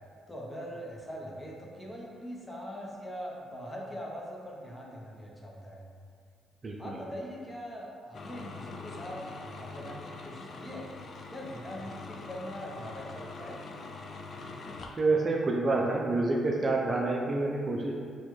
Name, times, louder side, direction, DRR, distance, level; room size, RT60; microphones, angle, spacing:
voice 1, 0.3-5.9 6.8-10.9 11.3-13.6, equal, 15° left, -3 dB, 0.7 m, -42 dB
voice 2, 6.6-7.0 15.0-17.9, right 2 dB, 35° right, -1 dB, 0.4 m, -28 dB
sound 1, 8.1-15.1, left 3 dB, 50° left, 0.3 m, -44 dB
4.1 x 2.2 x 3.0 m, 2.1 s
cardioid pair, 90°, 0 cm